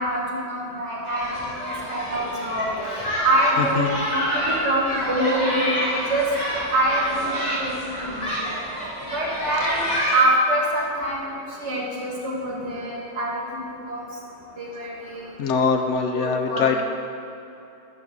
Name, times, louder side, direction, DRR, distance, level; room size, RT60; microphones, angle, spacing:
voice 1, 0.0-1.6 1.9-2.7 3.2-6.3 6.7-8.4 9.1-9.8 10.1-14.0 14.6-15.3 16.1-16.8, right 1 dB, 65° right, -4 dB, 2.0 m, -25 dB
sound 1, 1.1-10.2, equal, 35° left, 1.6 m, -28 dB
voice 2, 3.6-4.0 15.4-16.8, left 5 dB, 75° left, 5 dB, 1.0 m, -23 dB
11.0 x 4.0 x 6.1 m, 2.8 s
omnidirectional pair, 1.3 m